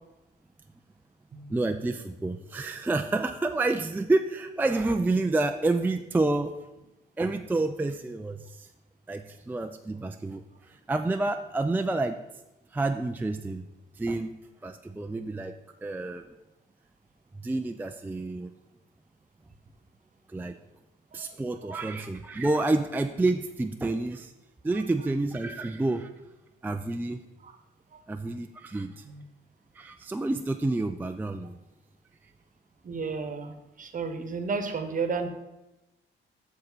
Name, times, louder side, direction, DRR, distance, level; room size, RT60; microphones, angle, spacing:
voice 1, 1.5-6.6 7.2-8.7 9.1-12.2 12.7-13.7 14.0-14.3 14.6-15.5 15.8-16.3 17.4-18.5 20.3-20.6 21.1-24.3 24.6-26.1 26.6-27.2 28.1-29.0 29.7-31.6, right 2 dB, 10° right, 6 dB, 0.4 m, -29 dB
voice 2, 32.8-35.3, right 4 dB, 40° right, 7 dB, 1.0 m, -32 dB
7.3 x 6.6 x 4.0 m, 0.98 s
cardioid pair, 90°, 20 cm